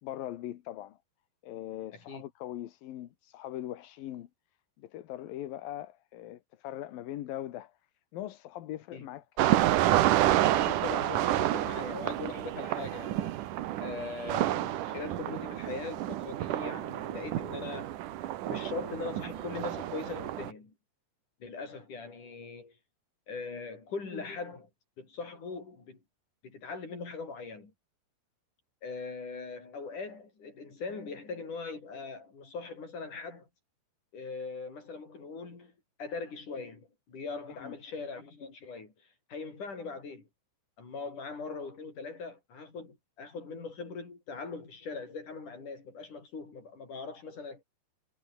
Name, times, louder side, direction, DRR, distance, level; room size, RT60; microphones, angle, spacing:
voice 1, 0.0-1.0 1.4-4.3 4.8-7.8 8.1-9.3 37.5-37.8, left 13 dB, 65° left, 2.7 m, -41 dB
voice 2, 1.9-2.2 8.9-9.1 10.5-13.4 13.8-18.0 18.5-20.7 21.4-22.7 23.3-24.7 25.0-26.0 26.4-27.7 28.8-33.5 34.1-35.7 36.0-38.9 39.3-40.3 40.8-47.6, left 4 dB, 45° left, 7.8 m, -41 dB
sound 1, 9.4-20.5, right 13 dB, 70° right, 2.0 m, -29 dB
omnidirectional pair, 5.0 m